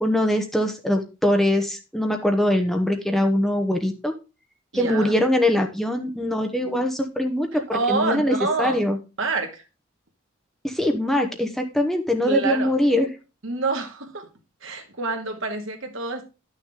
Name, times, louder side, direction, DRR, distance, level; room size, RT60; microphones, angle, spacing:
voice 1, 0.0-4.1 4.7-9.0 10.6-13.1, left 1 dB, ahead, 0.9 m, -22 dB
voice 2, 4.7-5.2 7.5-8.8 9.2-9.6 12.2-12.7 13.4-14.3 14.6-16.3, right 3 dB, 70° right, 1.9 m, -27 dB
11.5 x 6.5 x 3.7 m
head